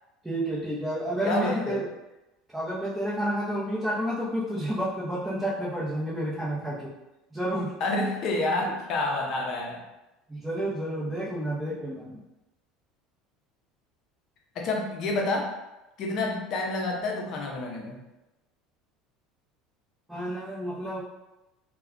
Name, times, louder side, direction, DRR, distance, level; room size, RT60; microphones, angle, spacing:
voice 1, 0.2-1.9 2.5-6.9 7.3-7.7 10.3-12.2 20.1-21.0, right 1 dB, 5° right, -10 dB, 0.6 m, -30 dB
voice 2, 1.2-1.8 7.8-9.8 14.5-15.5 16.0-18.0, left 2 dB, 50° left, 1 dB, 0.6 m, -28 dB
2.3 x 2.2 x 3.6 m, 0.98 s
supercardioid pair, 130°, 0 cm